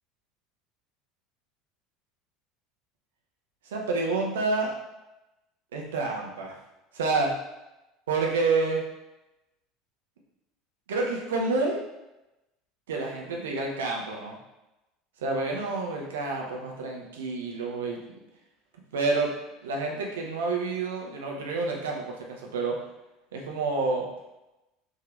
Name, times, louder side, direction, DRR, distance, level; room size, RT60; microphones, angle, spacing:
voice 1, 3.7-4.7 5.7-6.6 6.9-7.3 8.1-8.8 10.9-11.8 12.9-14.4 15.2-18.0 18.9-19.3 19.6-22.8 23.3-24.1, right 3 dB, 70° right, -1 dB, 0.7 m, -28 dB
3.6 x 2.8 x 3.2 m, 0.96 s
figure-of-eight pair, 70°, 0 cm